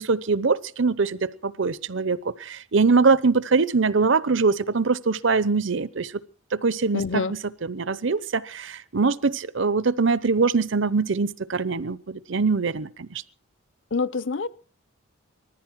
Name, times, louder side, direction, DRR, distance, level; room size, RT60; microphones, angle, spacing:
voice 1, 0.0-6.1 6.5-13.2, right 4 dB, 60° right, 0.8 m, -23 dB
voice 2, 6.9-7.3 13.9-14.5, left 4 dB, 60° left, 0.8 m, -26 dB
20.0 x 14.5 x 4.6 m
head